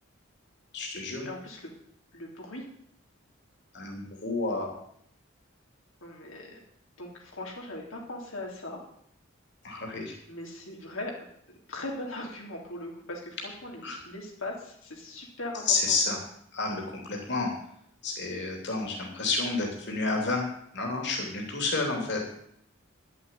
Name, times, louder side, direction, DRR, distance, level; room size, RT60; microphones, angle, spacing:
voice 1, 0.7-1.3 3.7-4.7 9.6-10.1 13.8-14.0 15.7-16.2 16.5-17.5 18.0-20.4 20.7-22.3, left 3 dB, 55° left, 0 dB, 3.2 m, -30 dB
voice 2, 1.2-1.7 2.1-2.6 6.0-6.6 7.0-8.8 10.3-11.1 11.5-16.0, left 2 dB, 85° left, -1 dB, 3.3 m, -39 dB
11.0 x 8.3 x 9.2 m, 0.68 s
head